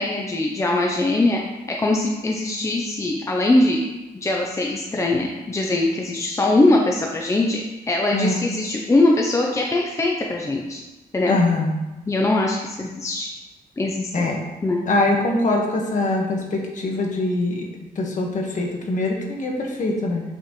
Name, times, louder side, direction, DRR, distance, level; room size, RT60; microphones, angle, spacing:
voice 1, 0.0-1.4 1.7-3.8 4.2-7.6 7.9-10.8 11.1-11.4 12.1-13.3 13.8-14.3 14.6-14.8, left 2 dB, 20° left, 0 dB, 0.7 m, -21 dB
voice 2, 8.1-8.4 11.3-11.8 14.1-14.4 14.9-17.6 17.9-20.2, left 2 dB, 50° left, 0 dB, 1.5 m, -23 dB
8.0 x 6.0 x 3.2 m, 1.1 s
wide cardioid pair, 150°, 17 cm